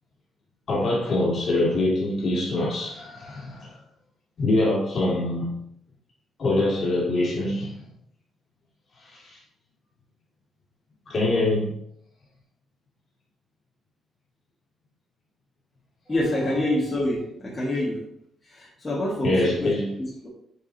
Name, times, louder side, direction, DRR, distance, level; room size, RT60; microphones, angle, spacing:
voice 1, 0.7-3.7 4.4-5.5 6.4-7.8 9.1-9.4 11.1-11.7 19.2-19.9, left 2 dB, 40° left, 2.0 m, -24 dB
voice 2, 16.1-18.0 18.5-19.7 20.0-20.3, left 1 dB, 20° left, 1.5 m, -27 dB
8.1 x 4.8 x 2.7 m
cardioid pair, 145°, 0 cm